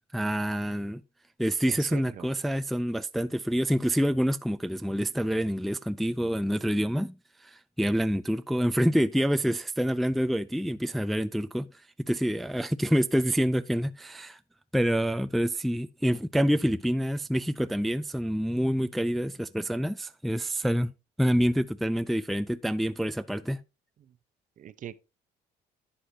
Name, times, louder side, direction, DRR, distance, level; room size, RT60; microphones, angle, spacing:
voice 1, 0.1-1.0 1.4-7.2 7.4-11.7 12.1-14.4 14.7-20.9 21.2-23.6, equal, ahead, 0.3 m, -27 dB
voice 2, 1.7-2.3 24.0-24.2 24.6-25.0, right 10 dB, 50° right, 0.7 m, -41 dB
11.5 x 7.7 x 2.8 m
cardioid pair, 110°, 17 cm